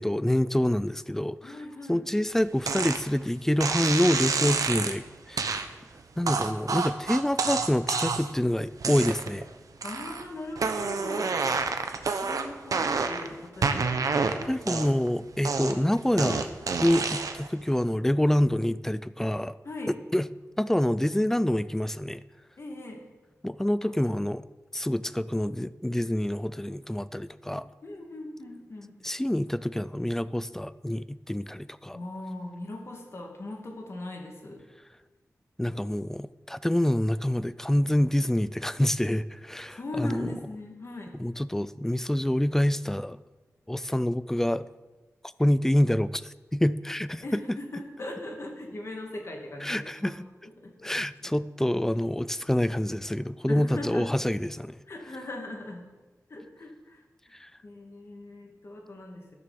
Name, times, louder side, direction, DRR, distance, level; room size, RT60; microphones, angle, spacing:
voice 1, 0.0-1.6 1.9-5.5 6.2-9.5 14.5-16.5 16.8-19.6 20.1-20.3 20.6-22.2 23.4-24.4 24.7-27.7 29.0-32.0 35.6-40.3 41.2-43.2 43.7-44.6 45.4-47.2 47.5-47.6 49.6-50.2 50.8-54.8 57.4-57.5, left 1 dB, 5° left, 16 dB, 0.4 m, -27 dB
voice 2, 1.4-2.0 9.8-11.4 12.2-14.9 19.6-20.0 22.6-23.1 23.8-23.9 27.8-28.9 31.9-34.7 39.7-41.2 47.2-50.1 50.4-50.9 51.2-51.3 53.5-54.1 54.9-55.9 56.3-57.0 57.3-57.4 57.6-59.4, left 2 dB, 50° left, 1 dB, 2.2 m, -39 dB
sound 1, 2.7-3.0 3.6-5.0 5.4-5.7 6.3-8.4 8.8-9.4 9.8-10.2 10.6-13.3 13.6-15.1 15.4-17.5, right 4 dB, 80° right, 0.9 m, -28 dB
14.0 x 6.8 x 6.9 m, 1.2 s
wide cardioid pair, 120°, 6 cm